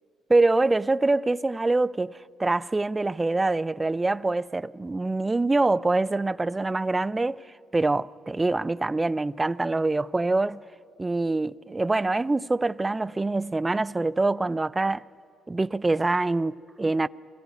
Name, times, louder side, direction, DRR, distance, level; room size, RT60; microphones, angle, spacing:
voice 1, 0.3-7.4 7.7-10.6 11.0-15.1 15.5-17.1, right 2 dB, 20° right, 0.4 m, -25 dB
24.5 x 16.0 x 9.3 m
hypercardioid pair, 55°, 0 cm